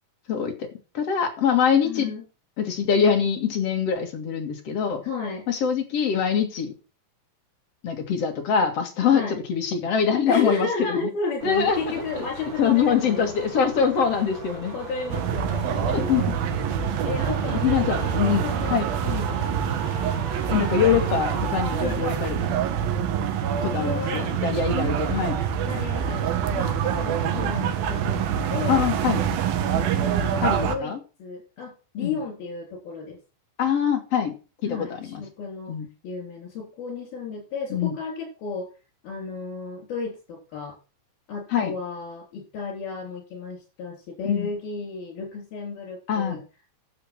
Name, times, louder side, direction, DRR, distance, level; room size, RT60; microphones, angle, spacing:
voice 1, 0.3-0.7 0.9-2.1 2.6-5.0 5.5-6.7 7.8-9.2 9.5-11.1 11.4-11.8 12.2-12.3 12.6-14.7 15.8-16.3 17.5-18.4 18.7-18.9 20.5-22.4 23.6-25.4 28.7-29.2 30.4-31.0 32.0-32.2 33.6-34.3 34.6-35.2 35.7-35.9 37.7-37.9 41.5-41.7 44.3-44.5 46.1-46.4, left 7 dB, 50° left, 4 dB, 2.7 m, -23 dB
voice 2, 1.8-2.2 5.0-5.5 9.1-9.4 10.3-13.4 14.7-16.3 17.1-18.8 19.0-19.5 21.8-22.0 23.6-24.4 25.7-28.9 29.7-33.2 34.6-35.7 36.0-38.7 39.0-40.8 41.3-46.4, left 4 dB, 80° left, -4 dB, 5.8 m, -33 dB
sound 1, 11.4-21.9, right 3 dB, 40° right, 4.0 m, -38 dB
sound 2, 15.1-30.8, right 8 dB, 80° right, 2.9 m, -26 dB
10.0 x 7.5 x 6.1 m, 0.33 s
omnidirectional pair, 4.2 m